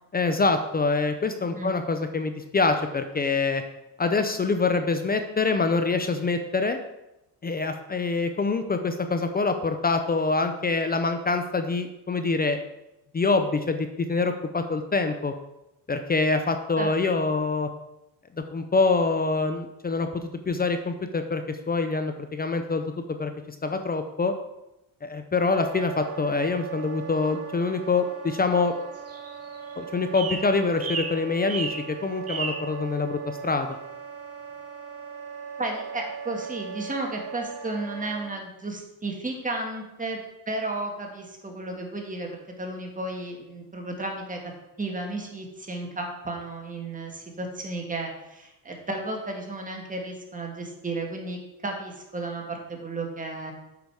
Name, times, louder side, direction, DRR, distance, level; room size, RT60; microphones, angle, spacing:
voice 1, 0.1-3.6 4.0-6.8 7.4-12.6 13.1-15.3 15.9-17.7 18.5-22.8 23.2-24.3 25.0-28.7 29.8-33.7, left 3 dB, 20° left, 7 dB, 0.6 m, -25 dB
voice 2, 16.7-17.3 35.6-40.2 40.4-44.4 44.8-53.5, right 2 dB, 20° right, 1 dB, 1.8 m, -33 dB
Wind instrument woodwind instrument, 25.5-38.3, right 6 dB, 85° right, 2.2 m, -39 dB
sound 1, 28.9-29.7 30.1-30.5 30.8-31.2 31.5-31.8 32.3-32.6, right 5 dB, 35° right, 1.2 m, -32 dB
8.2 x 5.1 x 4.7 m, 0.93 s
cardioid pair, 100°, 42 cm